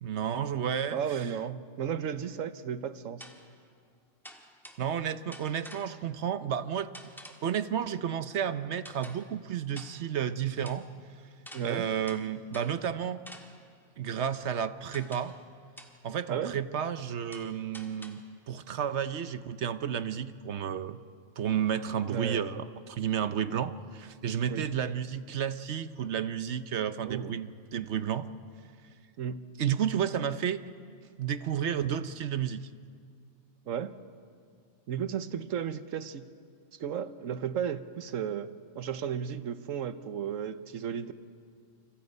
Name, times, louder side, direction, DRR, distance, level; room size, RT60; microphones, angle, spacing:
voice 1, 0.0-1.4 4.8-6.9 7.2-10.8 11.6-13.2 14.0-15.3 16.0-21.0 21.4-28.3 29.6-30.6 31.2-32.7, right 8 dB, 65° right, 12 dB, 1.0 m, -32 dB
voice 2, 0.9-3.3 11.5-11.9 16.3-16.6 22.1-22.4 24.5-24.7 27.0-27.4 29.2-29.4 33.7-34.0 34.9-36.2 36.8-41.1, right 8 dB, 80° right, 12 dB, 1.3 m, -34 dB
sound 1, 1.8-1.9 3.2-3.6 4.2-5.0 5.3-6.1 6.9-7.6 8.8-9.4 9.8-10.2 10.6-10.9 11.5-12.9 13.3-13.8 14.9-15.5 15.8-16.1 17.3-18.4, equal, ahead, 1.6 m, -50 dB
28.0 x 26.0 x 5.4 m, 2.2 s
omnidirectional pair, 1.3 m